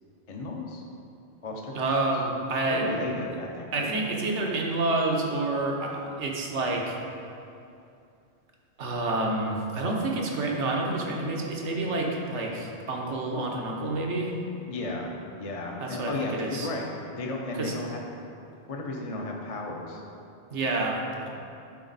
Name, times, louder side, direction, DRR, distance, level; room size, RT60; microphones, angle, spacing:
voice 1, 0.3-0.8 1.4-2.1 2.7-3.9 14.7-15.1 15.4-16.9 17.2-18.0 18.7-20.0, left 2 dB, 40° left, -1 dB, 0.6 m, -34 dB
voice 2, 1.7-2.8 3.7-7.0 8.8-14.4 15.8-16.7 17.6-17.7 20.5-21.0, right 2 dB, 85° right, 0 dB, 1.3 m, -28 dB
10.5 x 4.2 x 4.0 m, 2.6 s
omnidirectional pair, 1.2 m